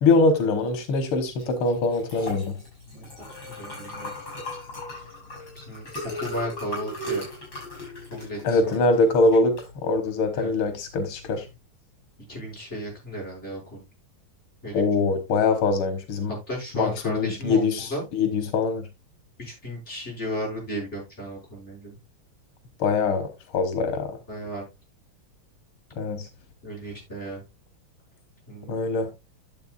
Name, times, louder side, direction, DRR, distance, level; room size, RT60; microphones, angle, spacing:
voice 1, 0.0-2.6 8.4-9.6 9.8-11.5 14.7-16.3 16.7-18.9 22.8-23.3 23.5-24.1 26.0-26.3 28.7-29.1, left 3 dB, 90° left, 2.0 m, -23 dB
Liquid, 1.3-11.5, left 1 dB, 65° left, 7.6 m, -38 dB
voice 2, 3.6-4.1 4.9-5.0 5.5-5.9 6.2-7.2 8.1-8.7 10.3-10.5 12.3-13.8 14.6-14.8 16.5-18.0 19.4-22.0 24.3-24.6 26.6-27.4 28.5-28.8, equal, 30° left, 6.2 m, -34 dB
12.5 x 7.4 x 2.4 m
omnidirectional pair, 2.3 m